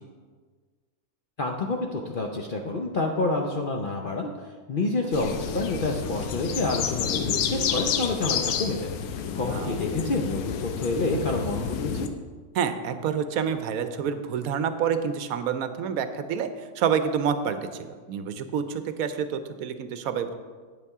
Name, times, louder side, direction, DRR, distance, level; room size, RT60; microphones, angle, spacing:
voice 1, 1.4-4.3 4.7-12.1, left 2 dB, 55° left, 2 dB, 0.6 m, -28 dB
sound 1, 5.1-12.1, left 7 dB, 85° left, 1.1 m, -30 dB
voice 2, 9.5-9.8 12.5-20.3, right 7 dB, 75° right, 10 dB, 1.0 m, -28 dB
9.0 x 8.3 x 3.5 m, 1.5 s
omnidirectional pair, 1.5 m